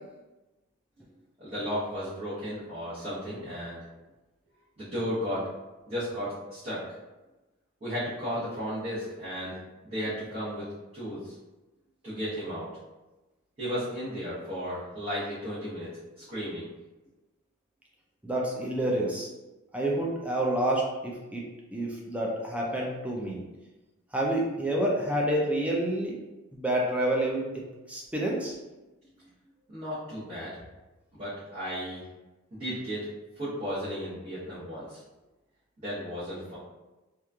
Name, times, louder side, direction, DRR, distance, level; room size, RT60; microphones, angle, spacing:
voice 1, 1.4-3.8 4.8-5.5 5.9-6.8 7.8-9.6 9.8-11.3 12.0-12.7 13.6-15.9 16.2-16.7 29.7-30.6 31.1-32.0 32.5-33.1 33.4-35.0 35.8-36.6, equal, 30° right, -14 dB, 0.9 m, -34 dB
voice 2, 18.2-19.3 19.7-21.4 21.7-23.4 24.1-26.2 26.5-27.5 27.9-28.5, right 1 dB, 5° right, -3 dB, 0.3 m, -28 dB
3.0 x 2.4 x 2.3 m, 1.1 s
head